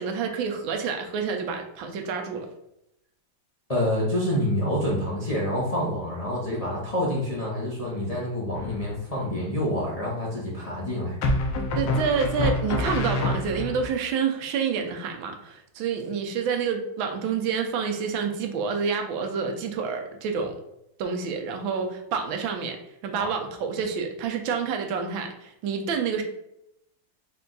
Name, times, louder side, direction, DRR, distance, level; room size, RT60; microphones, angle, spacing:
voice 1, 0.0-2.5 11.7-20.5 21.0-22.8 23.0-26.2, right 6 dB, 80° right, 4 dB, 1.4 m, -28 dB
voice 2, 3.7-11.2 23.2-23.3, left 1 dB, 55° left, -7 dB, 0.4 m, -27 dB
sound 1, 8.6-9.1 11.2-13.9, left 2 dB, 75° left, 1.4 m, -27 dB
4.5 x 2.2 x 3.8 m, 0.81 s
omnidirectional pair, 2.2 m